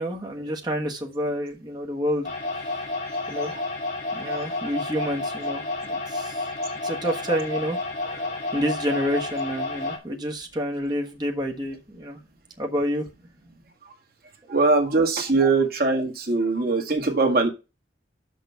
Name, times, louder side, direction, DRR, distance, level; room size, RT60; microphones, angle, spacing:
voice 1, 0.0-2.3 2.6-2.7 3.3-3.6 4.1-6.5 6.8-12.2 12.6-13.1 15.4-15.5, equal, 20° right, 1.4 m, -29 dB
sound 1, 2.2-10.0, left 2 dB, 40° left, 2.6 m, -30 dB
voice 2, 14.5-17.5, right 3 dB, 50° right, 2.0 m, -21 dB
6.4 x 5.1 x 6.9 m
head